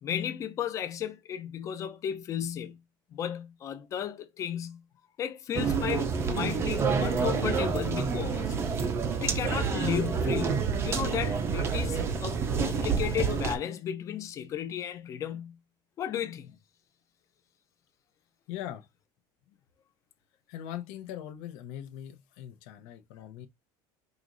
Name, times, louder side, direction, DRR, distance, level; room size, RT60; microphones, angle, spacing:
voice 1, 0.0-2.8 3.1-4.8 5.2-8.6 9.2-15.6 16.0-16.6, left 9 dB, 30° left, 0.5 m, -34 dB
sound 1, 5.5-13.6, right 5 dB, 25° right, 0.5 m, -28 dB
voice 2, 18.5-18.9 20.5-23.5, left 11 dB, 75° left, 0.7 m, -41 dB
4.9 x 3.0 x 2.6 m
cardioid pair, 165°, 10 cm